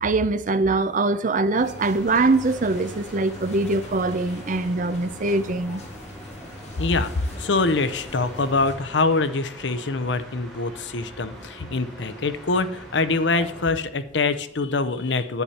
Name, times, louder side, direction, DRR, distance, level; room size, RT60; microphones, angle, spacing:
voice 1, 0.0-5.8, right 3 dB, 45° right, 0.6 m, -23 dB
sound 1, 1.6-8.7, left 1 dB, 40° left, 2.3 m, -41 dB
sound 2, 1.8-13.6, equal, ahead, 3.8 m, -43 dB
voice 2, 6.8-15.4, left 3 dB, 75° left, 0.8 m, -24 dB
10.5 x 8.5 x 4.3 m
head